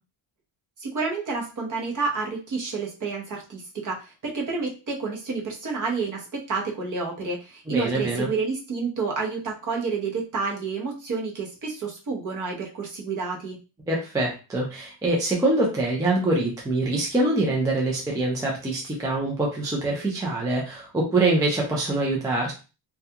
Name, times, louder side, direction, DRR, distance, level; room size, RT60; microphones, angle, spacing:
voice 1, 0.8-13.6, right 4 dB, 40° right, -1 dB, 0.8 m, -29 dB
voice 2, 7.7-8.3 13.9-22.5, right 2 dB, 10° right, -2 dB, 0.3 m, -24 dB
2.3 x 2.2 x 2.7 m, 0.32 s
cardioid pair, 165°, 47 cm